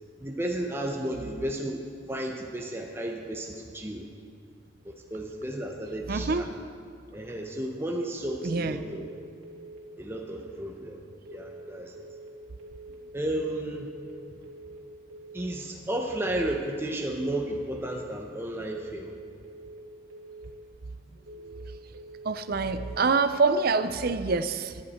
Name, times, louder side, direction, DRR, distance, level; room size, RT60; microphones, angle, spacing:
voice 1, 0.2-1.8 2.1-4.1 4.8-6.5 7.1-9.1 10.0-11.0 11.3-12.0 13.1-13.9 15.3-19.2, right 1 dB, 10° right, 1 dB, 0.7 m, -33 dB
voice 2, 6.1-6.4 8.4-8.8 21.4-21.5 22.2-24.8, right 4 dB, 45° right, 11 dB, 0.5 m, -26 dB
sound 1, 8.8-9.2 9.4-9.8 10.1-10.5 11.3-11.7 11.9-12.3 12.6-13.0 13.8-14.2 14.4-14.8 15.1-15.5 16.3-16.7 16.9-17.3 17.6-18.0 18.8-19.2 19.4-19.8 20.1-20.5 21.3-21.7 21.9-22.3 22.6-23.0, right 2 dB, 85° right, 2.2 m, -46 dB
15.0 x 10.5 x 4.3 m, 2.3 s
head